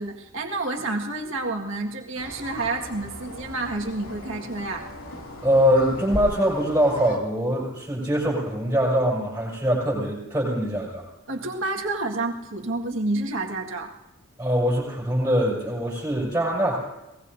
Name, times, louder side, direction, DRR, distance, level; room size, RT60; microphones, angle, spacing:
voice 1, 0.0-4.9 11.3-13.9, right 2 dB, 65° right, 1 dB, 1.8 m, -29 dB
sound 1, 2.2-7.2, left 1 dB, 85° left, 2.7 m, -37 dB
voice 2, 5.4-11.0 14.4-16.8, equal, 10° right, -4 dB, 6.4 m, -23 dB
23.0 x 19.5 x 2.7 m, 0.99 s
head